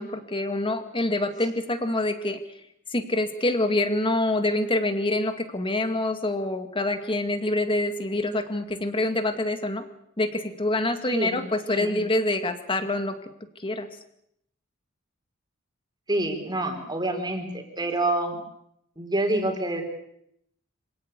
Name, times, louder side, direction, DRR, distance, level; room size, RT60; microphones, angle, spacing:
voice 1, 0.0-2.4 2.9-9.9 10.2-13.1 13.6-13.9, left 2 dB, 25° left, 8 dB, 2.2 m, -26 dB
voice 2, 11.1-11.4 11.7-12.0 16.1-18.4 19.0-19.8, right 1 dB, 20° right, 4 dB, 4.4 m, -27 dB
26.0 x 17.0 x 8.4 m, 0.75 s
head